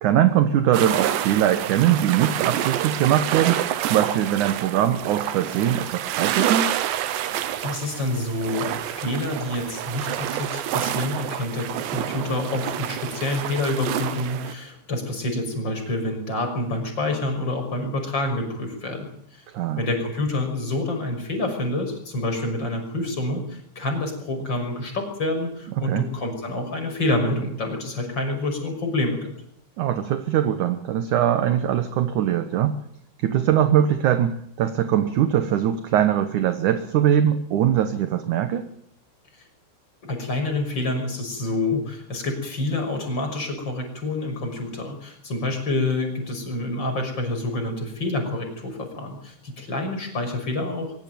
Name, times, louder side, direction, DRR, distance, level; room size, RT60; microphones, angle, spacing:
voice 1, 0.0-3.6 3.9-6.8 19.5-19.8 25.8-26.1 29.8-32.8 33.2-38.7, right 10 dB, 65° right, 9 dB, 2.1 m, -21 dB
sound 1, 0.7-14.5, right 11 dB, 85° right, 3.4 m, -28 dB
voice 2, 7.6-19.4 19.8-29.3 39.3-39.4 40.1-50.8, left 2 dB, 25° left, 4 dB, 6.5 m, -27 dB
23.5 x 18.0 x 9.3 m, 0.67 s
omnidirectional pair, 5.0 m